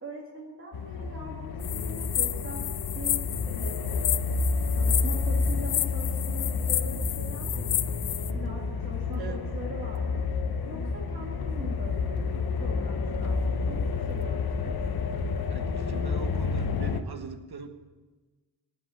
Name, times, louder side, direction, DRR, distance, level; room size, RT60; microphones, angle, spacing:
voice 1, 0.0-2.7 2.9-3.2 3.5-4.3 4.7-7.9 8.3-10.3 10.7-12.2 12.6-14.8, equal, 35° right, -4 dB, 2.2 m, -42 dB
sound 1, 0.7-17.0, left 4 dB, 65° left, 0.9 m, -29 dB
sound 2, 1.6-8.3, left 12 dB, 85° left, 0.5 m, -31 dB
voice 2, 15.5-17.7, right 4 dB, 70° right, 7 dB, 1.3 m, -41 dB
16.5 x 5.7 x 8.9 m, 1.3 s
wide cardioid pair, 100°, 39 cm